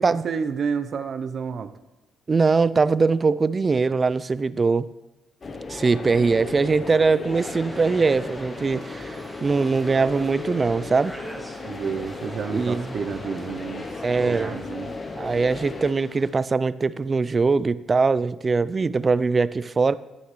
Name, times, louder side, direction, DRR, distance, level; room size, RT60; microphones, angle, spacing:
voice 1, 0.0-1.7 11.6-13.9 14.2-14.9, right 6 dB, 55° right, 10 dB, 0.7 m, -30 dB
voice 2, 2.3-4.9 5.7-11.1 12.5-12.9 14.0-14.5 15.2-19.9, right 4 dB, 30° right, 17 dB, 0.4 m, -22 dB
sound 1, 5.4-15.9, left 3 dB, 40° left, 0.9 m, -36 dB
sound 2, 7.3-16.3, right 1 dB, ahead, 2.0 m, -44 dB
12.5 x 9.6 x 3.2 m, 1.1 s
cardioid pair, 90°, 0 cm